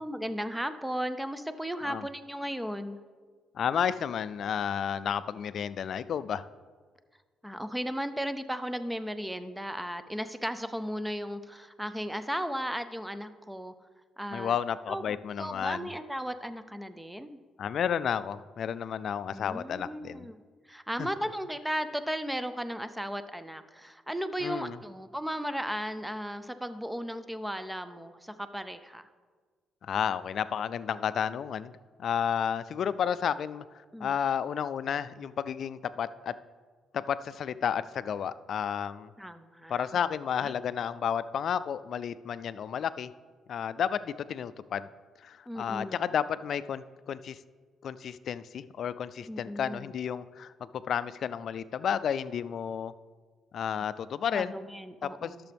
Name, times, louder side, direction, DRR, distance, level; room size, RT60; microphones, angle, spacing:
voice 1, 0.0-3.0 7.4-13.7 14.2-14.6 14.9-17.4 19.3-20.4 20.7-29.1 33.9-34.1 39.2-39.8 40.4-40.5 45.5-46.0 49.2-49.9 54.3-55.5, equal, 5° right, 11 dB, 0.5 m, -35 dB
voice 2, 3.5-6.4 14.3-15.9 17.6-20.3 21.0-21.1 24.4-24.8 29.8-31.7 32.0-33.6 34.0-36.3 36.9-39.1 39.7-43.1 43.5-44.9 45.2-47.4 47.8-52.9 53.5-54.5 55.0-55.5, left 8 dB, 60° left, 15 dB, 0.3 m, -32 dB
12.0 x 6.8 x 3.4 m, 1.5 s
cardioid pair, 90°, 0 cm